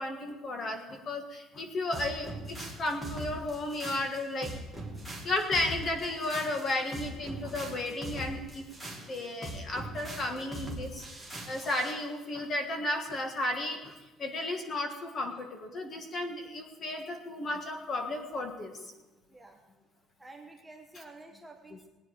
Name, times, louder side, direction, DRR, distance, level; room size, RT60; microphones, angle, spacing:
voice 1, 0.0-4.5 5.2-8.6 9.0-11.1 11.5-18.9, left 2 dB, 30° left, 5 dB, 1.6 m, -34 dB
sound 1, 1.9-12.0, right 1 dB, 10° left, 2.2 m, -41 dB
voice 2, 19.3-19.6 20.2-21.9, right 2 dB, 5° right, 2 dB, 1.1 m, -50 dB
18.5 x 9.7 x 5.0 m, 1.1 s
cardioid pair, 170°, 0 cm